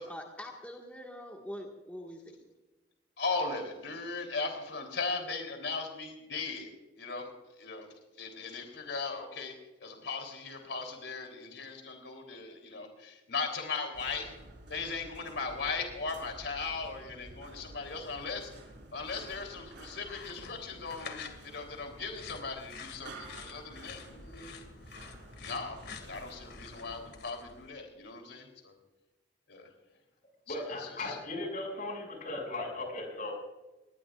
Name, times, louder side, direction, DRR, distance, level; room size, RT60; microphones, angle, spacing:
voice 1, 0.1-2.5, left 1 dB, 10° left, 0 dB, 1.7 m, -44 dB
voice 2, 3.2-6.7 7.0-7.3 7.6-7.9 8.2-9.5 9.8-14.4 14.7-18.5 18.9-24.5 25.4-28.7 29.5-29.7 30.5-31.2, left 4 dB, 80° left, 3 dB, 3.5 m, -38 dB
sound 1, 13.9-27.1, right 1 dB, 85° right, 4.7 m, -51 dB
sound 2, 19.3-27.7, left 5 dB, 65° left, 2.2 m, -49 dB
voice 3, 30.5-33.3, left 2 dB, 50° left, 2 dB, 6.4 m, -37 dB
20.5 x 20.5 x 2.5 m, 1.1 s
head